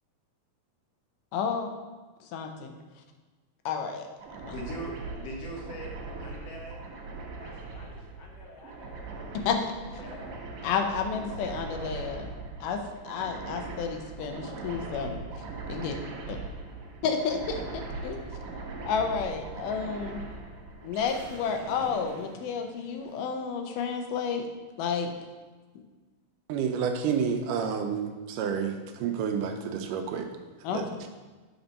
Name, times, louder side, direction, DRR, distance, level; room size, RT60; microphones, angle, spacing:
voice 1, 1.3-1.7 2.3-2.7 3.7-4.1 9.5-9.6 10.6-12.3 12.6-15.9 16.3-16.4 17.0-18.2 18.9-20.2 20.8-24.4 24.8-25.1 30.6-30.8, left 6 dB, 85° left, 5 dB, 2.3 m, -31 dB
sound 1, 4.2-23.0, right 3 dB, 70° right, 1.4 m, -40 dB
voice 2, 4.5-5.9 6.2-6.8 7.4-10.3, equal, 60° left, -1 dB, 1.9 m, -43 dB
voice 3, 26.5-30.3 30.7-31.1, right 7 dB, 90° right, 4 dB, 2.2 m, -30 dB
7.0 x 4.4 x 5.2 m, 1.3 s
omnidirectional pair, 3.7 m